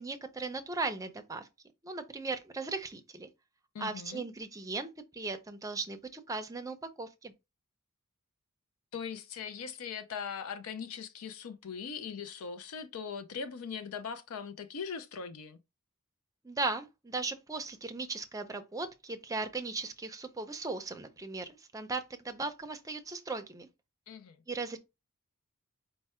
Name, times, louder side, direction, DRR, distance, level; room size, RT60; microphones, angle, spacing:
voice 1, 0.0-1.5 1.8-3.3 3.8-7.3 16.4-23.7 24.5-24.8, right 3 dB, 15° right, 0.5 m, -37 dB
voice 2, 3.7-4.3 8.9-15.6 24.1-24.4, left 6 dB, 70° left, 0.5 m, -40 dB
4.5 x 2.1 x 4.3 m
head